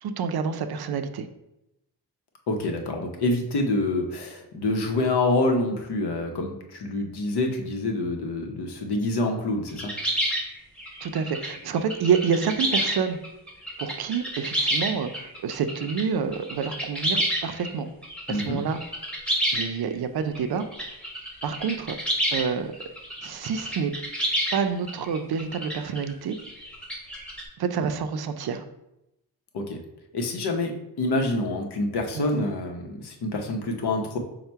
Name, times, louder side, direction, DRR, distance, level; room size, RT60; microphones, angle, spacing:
voice 1, 0.0-1.3 11.0-13.2 13.8-17.9 18.3-18.8 19.5-20.9 21.4-22.0 22.3-22.7 23.2-23.9 24.5-26.4 27.6-28.6 32.1-32.4, right 6 dB, 70° right, 9 dB, 0.5 m, -28 dB
voice 2, 2.5-9.9 18.3-18.6 29.5-29.8 30.1-30.7 31.0-34.2, left 2 dB, 75° left, 3 dB, 0.8 m, -26 dB
sound 1, 9.7-16.0 16.3-17.7 18.0-19.9 20.3-22.4 22.7-27.4, right 1 dB, 5° left, 1.0 m, -29 dB
5.6 x 2.1 x 4.4 m, 0.88 s
wide cardioid pair, 155°, 39 cm